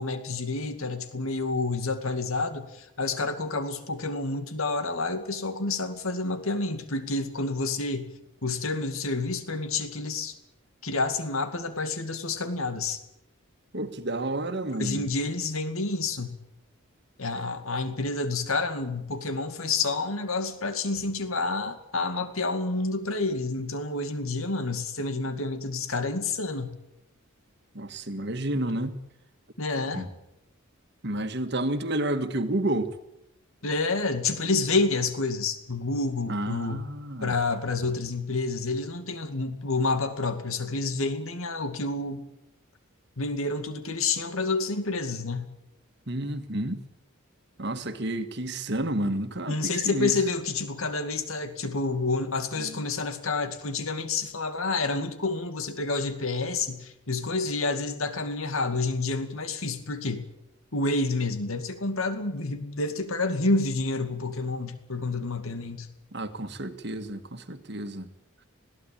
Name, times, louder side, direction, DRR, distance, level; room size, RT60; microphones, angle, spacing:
voice 1, 0.0-8.1 8.4-10.3 10.8-13.0 14.8-16.4 17.2-26.8 29.6-30.1 33.6-36.8 37.2-42.2 43.2-45.5 49.5-60.3 60.7-65.9, left 3 dB, 75° left, 2.3 m, -29 dB
voice 2, 13.7-15.1 27.7-28.9 29.9-30.1 31.0-32.9 36.3-37.3 46.1-46.8 47.6-50.1 52.6-52.8 66.1-68.1, right 1 dB, 50° right, 1.7 m, -30 dB
21.5 x 16.5 x 8.7 m
head